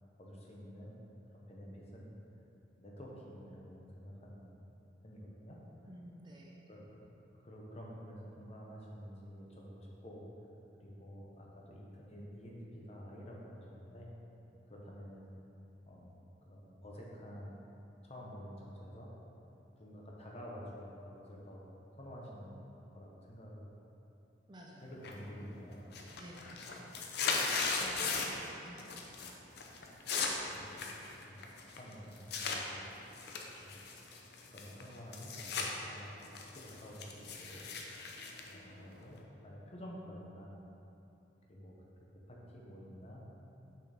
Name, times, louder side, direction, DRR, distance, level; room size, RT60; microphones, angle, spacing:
voice 1, 0.2-1.0 1.3-2.1 2.8-4.6 5.0-5.9 6.7-7.1 7.4-10.2 10.8-14.1 14.7-15.3 15.9-17.6 18.0-19.1 19.8-21.6 21.9-23.7 24.8-25.8 30.5-31.5 31.8-32.8 33.6-33.7 34.5-37.6 38.5-40.5 41.4-41.8 42.3-43.3, equal, 35° left, -3 dB, 0.9 m, -50 dB
voice 2, 5.9-6.6 24.5-24.9 26.2-26.9 27.2-28.9, equal, 25° right, -2 dB, 0.5 m, -53 dB
sound 1, 25.0-25.5 25.8-28.5 28.8-29.3 29.6-32.6 33.1-35.7 36.1-39.2, left 4 dB, 60° left, 0.6 m, -38 dB
6.3 x 5.8 x 3.5 m, 2.9 s
head